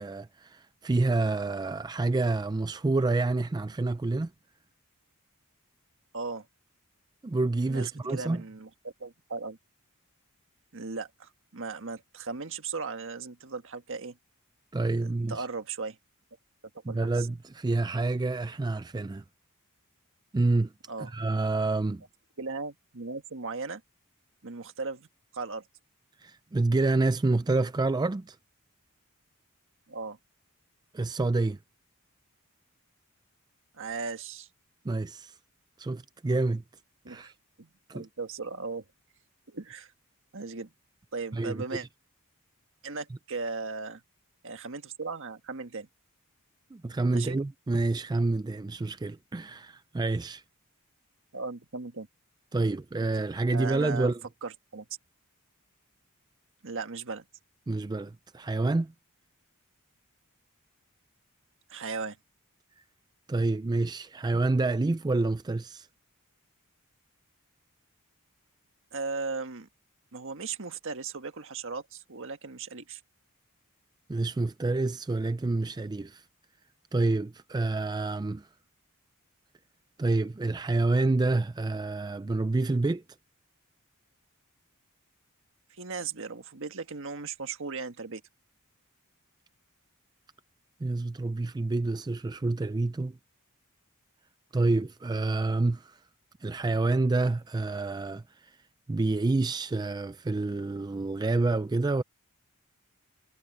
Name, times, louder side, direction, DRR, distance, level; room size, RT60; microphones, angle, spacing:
voice 1, 0.0-4.3 7.2-8.4 14.7-15.4 16.9-19.2 20.3-20.7 21.0-22.0 26.2-28.4 30.9-31.6 34.9-35.3 35.8-36.6 37.1-37.3 37.9-38.1 41.3-41.8 46.7-50.4 52.5-54.2 57.7-58.9 63.3-65.9 74.1-76.2 76.9-78.5 80.0-83.0 90.8-93.2 94.5-96.0 96.4-98.2 98.9-102.0, right 2 dB, 20° right, 0.4 m, -28 dB
voice 2, 6.1-6.5 7.7-9.6 10.7-14.2 15.3-16.0 16.9-17.3 20.9-21.1 22.4-23.8 24.4-25.1 25.3-25.7 29.9-30.2 33.7-34.5 37.0-37.3 37.6-38.8 39.5-39.9 40.3-40.7 41.1-41.9 42.8-44.0 44.4-45.9 47.1-47.4 51.3-52.1 52.6-52.8 53.5-54.1 54.4-54.9 56.6-57.2 61.7-62.2 68.9-69.7 70.1-73.0 85.7-88.2, right 4 dB, 60° right, 1.6 m, -37 dB
head